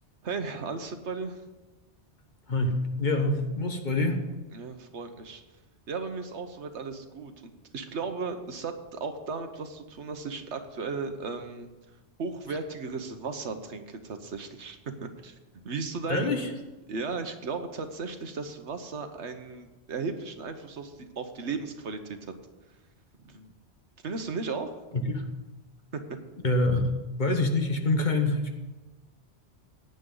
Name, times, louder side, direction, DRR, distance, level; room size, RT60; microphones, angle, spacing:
voice 1, 0.2-1.4 4.5-5.4 5.9-11.7 12.2-15.3 15.6-16.3 16.9-22.3 23.2-23.5 24.0-24.8 25.9-26.0, right 4 dB, 90° right, 7 dB, 1.4 m, -35 dB
voice 2, 2.5-4.2 16.1-16.5 24.9-25.2 26.4-26.9 27.2-28.6, left 2 dB, 45° left, 4 dB, 1.3 m, -26 dB
17.5 x 9.5 x 3.9 m, 1.1 s
omnidirectional pair, 1.1 m